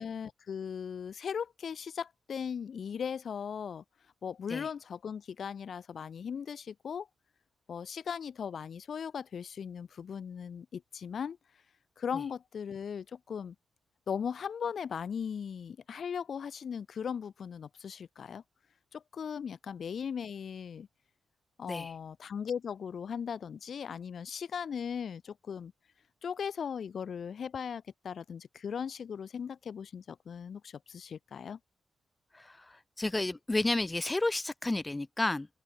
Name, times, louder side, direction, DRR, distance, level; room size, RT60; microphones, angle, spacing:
voice 1, 0.0-3.8 4.2-7.1 7.7-11.4 12.0-13.5 14.1-18.4 18.9-20.9 21.6-25.7 26.2-31.6, left 7 dB, 65° left, 0.6 m, -38 dB
voice 2, 32.3-35.5, left 2 dB, 20° left, 0.4 m, -31 dB
open air
cardioid pair, 75°, 0 cm